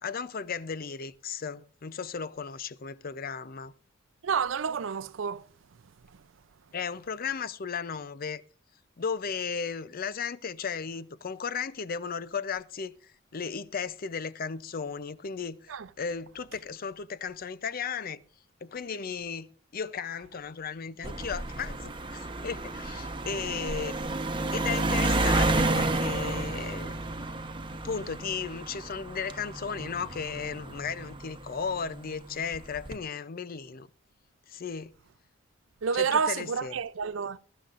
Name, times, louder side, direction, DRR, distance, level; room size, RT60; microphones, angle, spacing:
voice 1, 0.0-3.7 6.7-8.4 9.0-18.2 18.6-24.0 24.5-26.9 27.7-33.9 34.5-35.0 35.9-36.8, left 6 dB, 50° left, 0.6 m, -35 dB
voice 2, 4.2-5.5 15.7-15.9 35.8-37.4, right 6 dB, 85° right, 0.5 m, -29 dB
sound 1, 21.0-31.8 32.5-33.0, right 2 dB, 25° right, 1.1 m, -31 dB
22.0 x 12.0 x 2.5 m
head